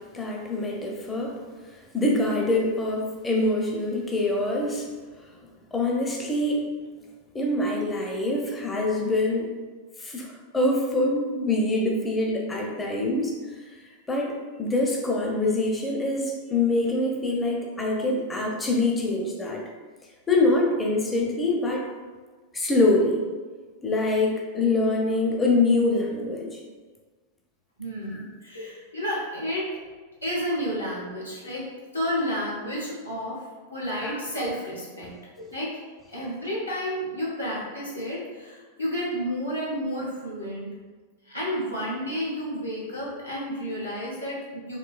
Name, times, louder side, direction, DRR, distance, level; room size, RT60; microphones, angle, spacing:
voice 1, 0.0-1.4 1.9-4.9 5.7-6.6 7.3-9.5 10.0-13.4 13.8-14.3 14.6-19.6 20.3-21.8 22.5-23.2 23.8-26.6 28.1-28.2 34.0-34.1, left 2 dB, 15° left, -1 dB, 0.5 m, -25 dB
voice 2, 27.8-29.8 30.2-31.7 31.9-33.4 33.7-35.1 35.4-35.7 36.1-40.7 41.3-44.8, equal, 85° left, -7 dB, 1.0 m, -31 dB
3.7 x 2.7 x 2.2 m, 1.4 s
figure-of-eight pair, 90°, 0 cm